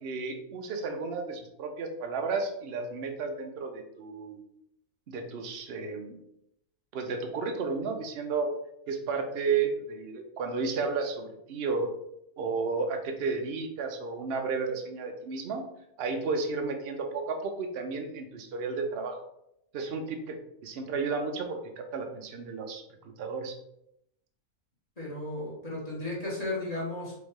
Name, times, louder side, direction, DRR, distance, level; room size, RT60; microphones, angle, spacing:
voice 1, 0.0-4.4 5.1-6.2 6.9-8.5 8.9-11.9 12.4-15.7 16.0-19.2 19.7-20.4 20.6-23.6, right 4 dB, 55° right, 5 dB, 0.8 m, -32 dB
voice 2, 25.0-27.1, left 2 dB, 30° left, -5 dB, 1.5 m, -34 dB
4.1 x 3.5 x 3.6 m, 0.79 s
omnidirectional pair, 1.5 m